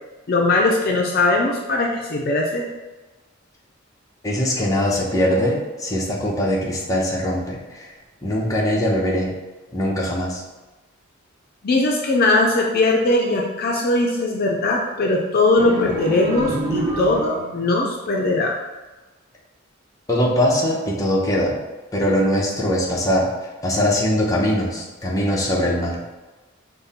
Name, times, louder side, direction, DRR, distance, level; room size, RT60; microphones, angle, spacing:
voice 1, 0.3-2.7 11.6-18.5, left 2 dB, 50° left, -1 dB, 0.5 m, -20 dB
voice 2, 4.2-7.9 8.2-9.3 9.7-10.4 20.1-21.5 21.9-26.0, left 1 dB, 15° left, -4 dB, 0.8 m, -21 dB
sound 1, 15.6-17.6, right 2 dB, 15° right, 0.8 m, -27 dB
5.4 x 2.1 x 4.2 m, 1.2 s
head